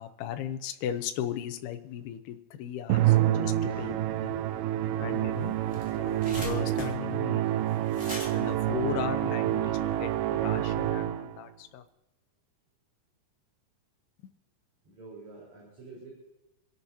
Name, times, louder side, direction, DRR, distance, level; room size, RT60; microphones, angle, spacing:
voice 1, 0.0-3.9 4.2-4.4 5.0-5.5 5.9-7.4 8.3-10.1 10.4-11.8, left 10 dB, 85° left, 6 dB, 2.8 m, -37 dB
Musical instrument, 2.9-11.4, right 13 dB, 80° right, 2.2 m, -28 dB
voice 2, 3.7-4.0 14.8-16.1, right 3 dB, 45° right, -5 dB, 5.4 m, -47 dB
sound 1, 5.2-5.3 5.5-9.8, left 1 dB, 5° right, 1.9 m, -42 dB
27.5 x 11.5 x 2.8 m, 1.0 s
omnidirectional pair, 4.5 m